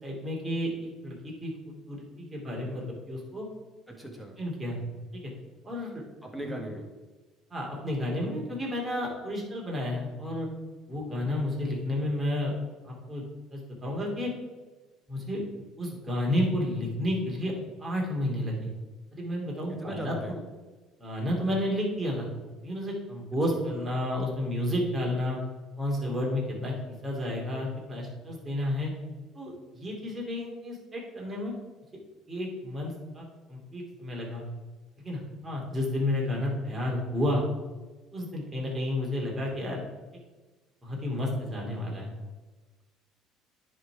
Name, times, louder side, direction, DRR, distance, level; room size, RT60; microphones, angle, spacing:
voice 1, 0.0-1.5 1.9-3.5 4.4-4.8 5.1-5.3 5.6-6.0 7.5-10.5 10.9-12.5 12.8-13.2 13.5-14.3 15.1-15.4 15.8-17.5 17.8-18.7 19.1-20.4 21.0-22.3 22.6-25.4 25.8-28.9 29.3-31.5 32.3-34.4 35.0-37.4 38.1-39.8 40.8-42.1, left 1 dB, 20° right, -3 dB, 2.6 m, -31 dB
voice 2, 3.9-4.4 6.2-6.8 19.7-20.4, right 1 dB, ahead, 1 dB, 1.7 m, -38 dB
9.8 x 3.9 x 4.7 m, 1.3 s
supercardioid pair, 90°, 0 cm